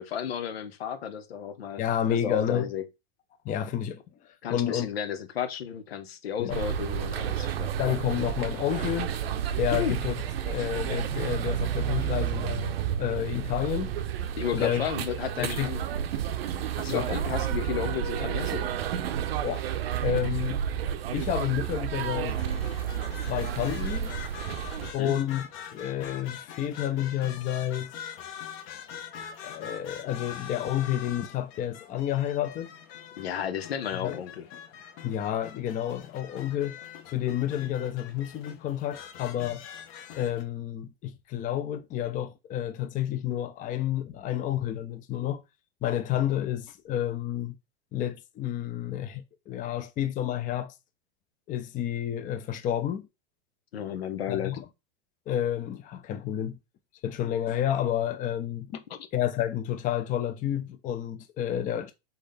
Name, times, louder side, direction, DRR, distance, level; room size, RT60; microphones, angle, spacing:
voice 1, 0.0-1.8 2.1-2.8 4.4-7.7 9.7-10.0 14.4-15.8 16.8-18.7 24.8-25.2 33.2-34.4 53.7-54.6, left 8 dB, 85° left, 0.9 m, -33 dB
voice 2, 1.8-2.7 3.4-4.9 6.4-6.6 7.8-9.1 9.6-10.1 10.4-13.9 14.5-14.9 15.4-15.7 16.9-17.1 19.4-19.7 20.0-20.6 21.1-22.4 23.3-24.1 24.9-27.9 29.4-32.7 33.9-34.2 35.0-36.8 37.1-39.6 40.2-45.4 45.8-47.6 47.9-50.7 51.5-53.1 54.3-54.6 55.3-56.6 57.0-58.8 59.1-61.9, left 11 dB, 25° left, 0.6 m, -30 dB
sound 1, 6.5-24.9, right 9 dB, 80° right, 0.7 m, -31 dB
sound 2, 22.3-40.4, left 8 dB, 45° left, 1.1 m, -44 dB
4.1 x 3.7 x 3.4 m
hypercardioid pair, 115°, 30 cm